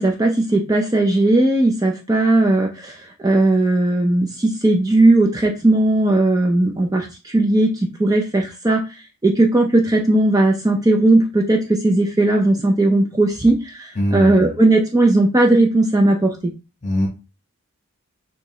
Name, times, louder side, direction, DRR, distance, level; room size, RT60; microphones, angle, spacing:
voice 1, 0.0-16.4, right 2 dB, 15° right, 1 dB, 0.4 m, -17 dB
voice 2, 13.9-14.4 16.8-17.1, left 1 dB, 35° left, -1 dB, 1.4 m, -21 dB
6.4 x 2.3 x 3.1 m, 0.30 s
head